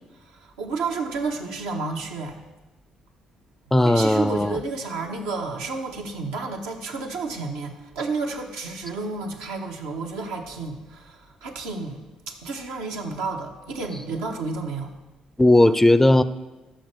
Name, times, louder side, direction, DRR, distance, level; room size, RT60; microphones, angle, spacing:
voice 1, 0.2-2.4 3.8-14.9, right 4 dB, 80° right, 2 dB, 0.9 m, -31 dB
voice 2, 3.7-4.6 15.4-16.2, left 1 dB, 10° left, 15 dB, 0.4 m, -17 dB
6.2 x 5.6 x 6.7 m, 1.1 s
hypercardioid pair, 50°, 2 cm